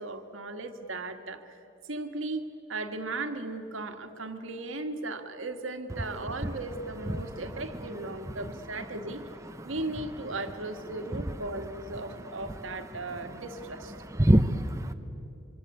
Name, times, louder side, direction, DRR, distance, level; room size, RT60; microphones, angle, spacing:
voice 1, 0.0-1.6 1.8-2.4 2.7-9.2 9.6-13.9, right 2 dB, 75° right, 7 dB, 1.8 m, -36 dB
voice 2, 7.1-7.5 8.3-8.4 9.4-9.7 11.1-11.4 12.0-13.4 13.9-14.9, right 1 dB, 15° right, 6 dB, 0.7 m, -28 dB
25.5 x 25.0 x 8.4 m, 2.8 s
head